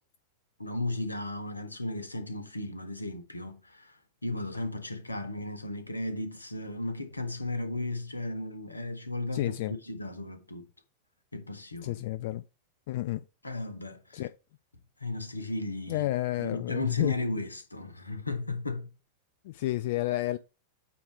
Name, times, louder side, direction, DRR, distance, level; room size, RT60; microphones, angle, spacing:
voice 1, 0.6-9.5 9.8-10.7 11.3-12.0 13.4-14.3 15.0-16.1 16.4-18.9, left 2 dB, 80° left, 1.2 m, -35 dB
voice 2, 9.3-9.8 11.8-12.4 12.9-13.2 14.1-14.3 15.9-17.1 19.4-20.4, left 16 dB, 50° left, 0.4 m, -30 dB
8.4 x 2.9 x 5.0 m
figure-of-eight pair, 90°, 0 cm